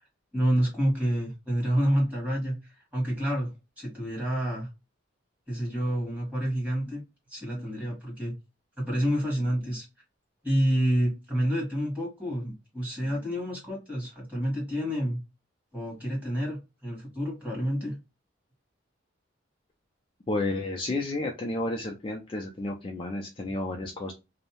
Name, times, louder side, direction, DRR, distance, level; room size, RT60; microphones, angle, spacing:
voice 1, 0.3-4.7 5.5-7.0 7.3-8.3 8.8-9.9 10.4-15.2 15.7-18.0, equal, 5° right, -4 dB, 1.4 m, -28 dB
voice 2, 20.3-24.1, left 2 dB, 25° left, 1 dB, 0.3 m, -31 dB
2.6 x 2.0 x 2.8 m, 0.26 s
head